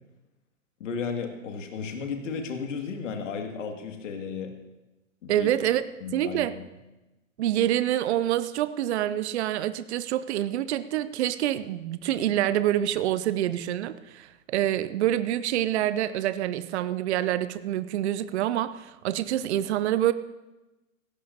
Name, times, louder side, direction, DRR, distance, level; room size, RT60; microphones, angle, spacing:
voice 1, 0.8-4.5 5.2-5.5 6.0-6.7, left 5 dB, 60° left, 4 dB, 2.3 m, -34 dB
voice 2, 5.3-5.9 6.1-6.5 7.4-20.1, right 12 dB, 50° right, 14 dB, 0.7 m, -26 dB
18.0 x 16.5 x 2.8 m, 1.0 s
figure-of-eight pair, 110°, 42 cm